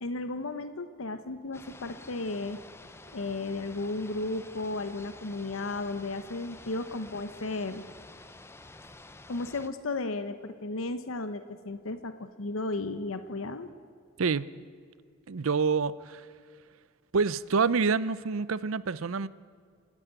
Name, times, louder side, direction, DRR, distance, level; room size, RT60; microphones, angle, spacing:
voice 1, 0.0-2.6 3.1-7.8 9.3-13.7, left 2 dB, 85° left, 10 dB, 0.9 m, -34 dB
sound 1, 1.5-9.7, left 2 dB, 10° left, 0.6 m, -50 dB
voice 2, 14.2-14.5 15.3-16.2 17.1-19.3, right 5 dB, 90° right, 18 dB, 0.6 m, -27 dB
28.5 x 10.5 x 9.1 m, 2.1 s
head